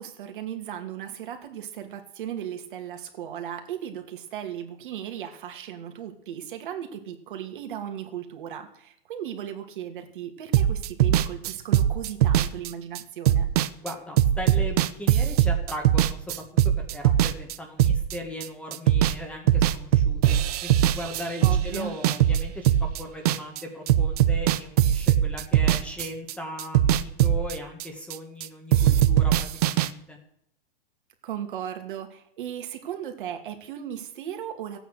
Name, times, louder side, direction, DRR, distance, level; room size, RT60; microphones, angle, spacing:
voice 1, 0.0-13.5 21.4-21.9 31.2-34.8, right 10 dB, 60° right, 5 dB, 2.6 m, -36 dB
sound 1, 10.5-18.5 18.7-19.2 19.5-23.6 23.9-28.5 28.7-29.9, right 11 dB, 40° right, 0.8 m, -21 dB
voice 2, 13.8-16.4 16.8-30.2, left 1 dB, 5° left, 2 dB, 1.6 m, -38 dB
15.0 x 9.0 x 6.7 m, 0.73 s
hypercardioid pair, 160°, 29 cm